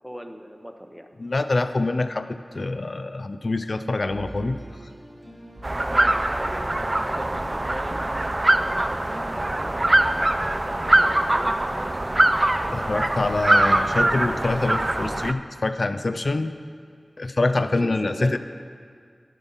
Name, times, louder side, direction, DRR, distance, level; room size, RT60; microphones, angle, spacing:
voice 1, 0.0-1.2 5.7-8.0 9.0-9.8 10.1-12.3 12.7-14.4 17.8-18.4, equal, ahead, 6 dB, 0.7 m, -39 dB
voice 2, 1.2-4.6 12.7-16.5 17.2-18.4, left 2 dB, 60° left, 10 dB, 0.3 m, -25 dB
sound 1, 4.1-10.6, right 1 dB, 75° right, 1.6 m, -42 dB
sound 2, 5.6-15.3, right 1 dB, 35° right, 0.3 m, -22 dB
10.5 x 5.5 x 5.4 m, 2.1 s
wide cardioid pair, 65°, 0 cm